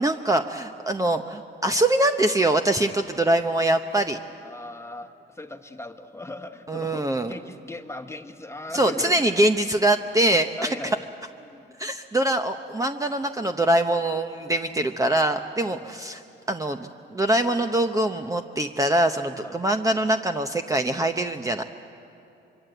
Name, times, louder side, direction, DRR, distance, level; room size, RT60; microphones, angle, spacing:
voice 1, 0.0-4.2 6.7-7.3 8.7-10.7 11.8-16.2 16.5-21.6, right 1 dB, 15° right, 6 dB, 0.8 m, -23 dB
voice 2, 4.4-9.3 10.6-11.0 11.4-11.6 14.7-14.8 15.7-16.0 19.4-19.5, left 2 dB, 15° left, 8 dB, 1.3 m, -38 dB
24.5 x 24.0 x 7.9 m, 2.8 s
cardioid pair, 90°, 20 cm